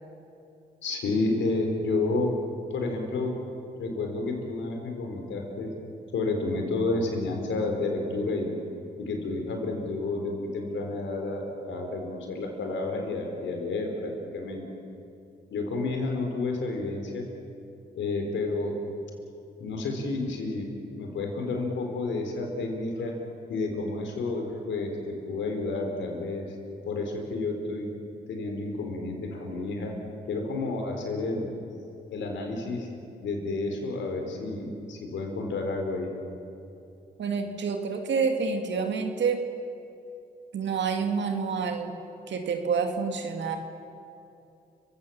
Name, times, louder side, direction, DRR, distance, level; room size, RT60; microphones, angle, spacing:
voice 1, 0.8-2.3 2.7-3.3 3.8-5.7 6.1-8.6 9.0-14.6 15.5-17.2 18.0-18.8 19.6-23.2 23.5-26.5 26.9-27.9 28.3-29.9 30.3-31.5 32.1-32.9 33.2-36.1, left 3 dB, 75° left, 3 dB, 4.3 m, -30 dB
voice 2, 37.2-39.4 40.5-41.9 42.3-43.6, right 5 dB, 70° right, 4 dB, 2.2 m, -28 dB
30.0 x 17.0 x 7.3 m, 2.8 s
supercardioid pair, 45°, 19 cm